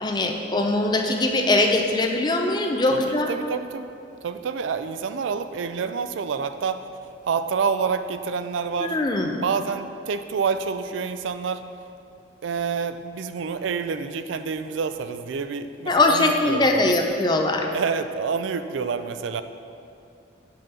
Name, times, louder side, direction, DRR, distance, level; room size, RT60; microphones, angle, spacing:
voice 1, 0.0-3.3 8.8-9.4 15.9-17.7, left 2 dB, 20° left, 3 dB, 0.4 m, -21 dB
voice 2, 2.9-3.9 4.2-6.8 7.2-9.0 9.3-11.6 12.4-17.0 17.7-19.4, right 5 dB, 80° right, 10 dB, 0.4 m, -28 dB
5.7 x 5.6 x 5.2 m, 2.5 s
head